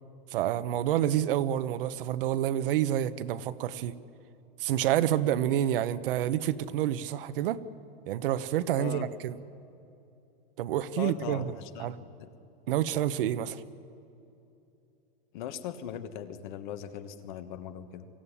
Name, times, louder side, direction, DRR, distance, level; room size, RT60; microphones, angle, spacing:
voice 1, 0.3-3.9 4.6-7.6 8.1-9.4 10.6-11.5 11.8-12.0 12.7-13.6, right 11 dB, 65° right, 13 dB, 1.0 m, -28 dB
voice 2, 8.7-9.1 10.9-12.3 15.3-18.1, left 9 dB, 50° left, 10 dB, 1.4 m, -39 dB
24.0 x 15.5 x 10.0 m, 2.8 s
supercardioid pair, 175°, 30 cm